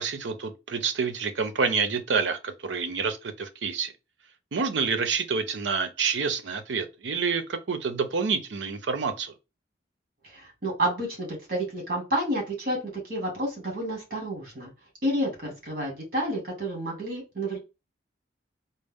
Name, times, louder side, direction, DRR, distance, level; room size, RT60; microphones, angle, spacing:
voice 1, 0.0-3.9 4.5-9.3, right 5 dB, 75° right, 0.6 m, -28 dB
voice 2, 10.2-14.7 15.0-17.6, right 1 dB, 50° right, 2.0 m, -30 dB
4.1 x 2.0 x 3.5 m
head